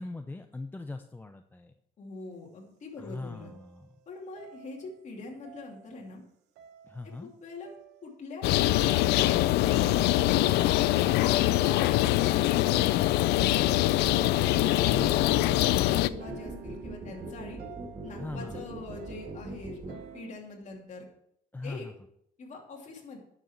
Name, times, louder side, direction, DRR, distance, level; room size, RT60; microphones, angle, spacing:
voice 1, 0.0-1.7 3.0-3.9 6.9-7.3 14.8-15.3 18.2-18.6 21.5-21.9, left 3 dB, 10° left, 7 dB, 0.5 m, -40 dB
voice 2, 2.0-3.5 4.1-6.2 7.0-7.7 8.0-9.5 14.7-17.6 18.0-21.1 21.6-21.9 22.4-23.2, left 3 dB, 45° left, -1 dB, 2.8 m, -44 dB
sound 1, 3.3-4.0 4.4-5.1 5.4-6.2 6.6-7.3 7.6-8.1 8.6-20.3, right 7 dB, 85° right, 1.0 m, -49 dB
sound 2, 8.4-16.1, left 16 dB, 80° left, 0.4 m, -24 dB
sound 3, 14.0-19.9, right 2 dB, 25° right, 2.4 m, -41 dB
10.5 x 6.6 x 4.5 m, 0.72 s
cardioid pair, 110°, 17 cm